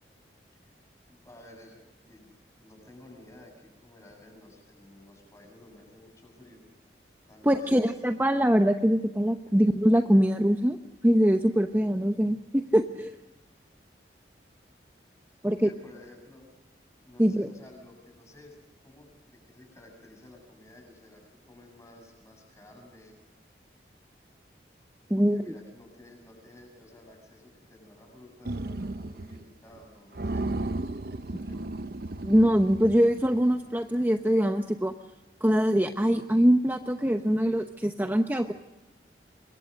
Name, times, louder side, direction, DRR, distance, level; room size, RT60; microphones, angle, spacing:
voice 1, 1.1-1.8 2.1-2.3 2.6-6.6 7.3-7.9 15.4-16.5 17.0-18.6 18.8-23.1 25.2-30.7 31.1-31.7, left 1 dB, 15° left, 3 dB, 7.3 m, -53 dB
voice 2, 7.4-10.8 11.0-13.2 15.4-15.7 17.2-17.5 25.1-25.4 32.2-34.9 35.4-38.5, equal, 10° right, 6 dB, 0.9 m, -23 dB
sound 1, 28.5-29.5 29.7-29.8 30.1-33.5, right 2 dB, 55° right, 0.8 m, -34 dB
27.0 x 23.0 x 6.5 m, 1.0 s
head